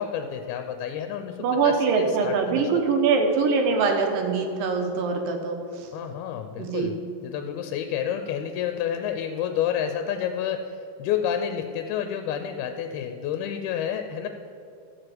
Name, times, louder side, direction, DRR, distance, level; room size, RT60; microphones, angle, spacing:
voice 1, 0.0-2.7 5.9-7.0 7.2-14.3, left 9 dB, 85° left, 6 dB, 2.5 m, -29 dB
voice 2, 1.4-5.9 6.6-6.9, right 4 dB, 70° right, 3 dB, 2.7 m, -23 dB
14.0 x 4.8 x 7.7 m, 2.5 s
omnidirectional pair, 4.4 m